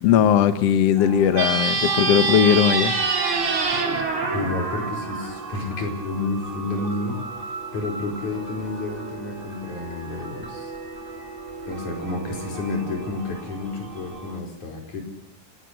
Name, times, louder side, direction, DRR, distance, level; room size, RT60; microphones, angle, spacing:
voice 1, 0.0-2.9, left 9 dB, 75° left, 10 dB, 1.4 m, -18 dB
sound 1, 1.0-14.4, right 3 dB, 20° right, 1.7 m, -38 dB
sound 2, 1.3-5.8, right 4 dB, 40° right, 2.8 m, -25 dB
sound 3, 4.1-13.1, right 7 dB, 80° right, 4.2 m, -43 dB
voice 2, 4.3-10.7 11.7-15.0, left 3 dB, 50° left, 2 dB, 6.1 m, -30 dB
30.0 x 17.0 x 8.1 m, 0.81 s
omnidirectional pair, 4.5 m